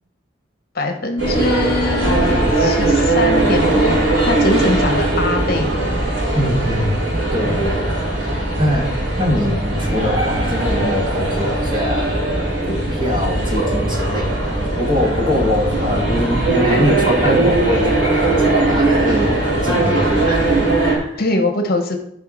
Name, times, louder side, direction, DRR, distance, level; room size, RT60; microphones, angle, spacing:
voice 1, 0.7-6.0 16.7-16.9 21.2-22.0, left 2 dB, 50° left, 4 dB, 1.2 m, -22 dB
sound 1, 1.2-21.0, right 2 dB, 90° right, 4.1 m, -19 dB
voice 2, 6.3-7.0 7.3-20.5 20.7-21.2, left 1 dB, 25° right, -1 dB, 2.2 m, -23 dB
14.0 x 5.1 x 4.1 m, 0.73 s
head